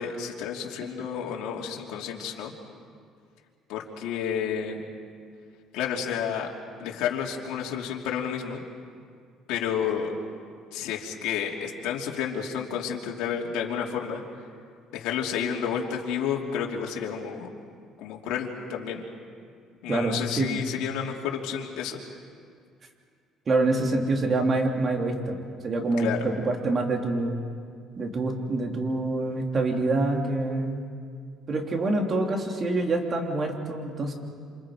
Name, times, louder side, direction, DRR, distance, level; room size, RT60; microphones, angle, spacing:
voice 1, 0.0-2.5 3.7-4.8 5.7-6.5 6.8-8.6 9.5-10.2 10.7-14.2 14.9-17.5 18.0-19.1 19.8-22.0 26.0-26.2, left 8 dB, 80° left, -1 dB, 3.0 m, -30 dB
voice 2, 19.9-20.6 23.5-27.3 28.0-30.8 31.5-34.1, right 2 dB, 35° right, 2 dB, 3.2 m, -26 dB
28.0 x 28.0 x 5.1 m, 2.2 s
cardioid pair, 110°, 0 cm